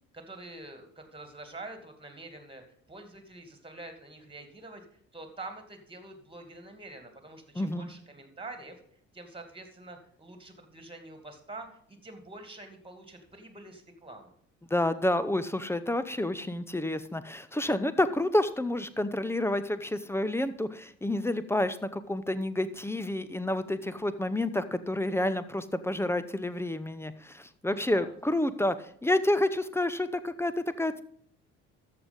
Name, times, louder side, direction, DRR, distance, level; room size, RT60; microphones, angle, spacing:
voice 1, 0.1-2.6 2.9-4.8 5.1-8.8 9.1-14.3 27.7-28.1, right 2 dB, 15° right, 6 dB, 2.3 m, -46 dB
voice 2, 7.6-7.9 14.7-30.5 30.8-31.0, left 1 dB, 5° left, 13 dB, 0.7 m, -29 dB
13.5 x 4.8 x 5.3 m, 0.63 s
figure-of-eight pair, 50°, 39 cm